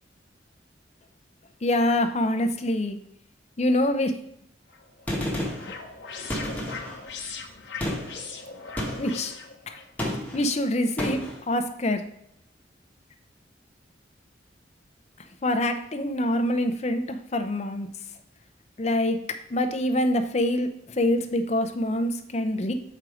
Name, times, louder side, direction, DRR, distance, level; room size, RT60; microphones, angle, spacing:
voice 1, 1.6-3.0 3.6-4.1 9.0-9.3 9.7-9.8 10.3-12.0 15.4-17.9 18.8-19.2 19.5-22.7, left 1 dB, 35° left, 7 dB, 0.6 m, -25 dB
sound 1, 4.7-9.9, left 5 dB, 80° left, 1.0 m, -40 dB
Gunshot gunfire, 5.1-5.7 6.3-7.0 7.8-8.2 8.8-9.2 10.0-10.5 11.0-11.4, left 1 dB, 10° left, 1.4 m, -30 dB
6.4 x 4.5 x 4.9 m, 0.74 s
head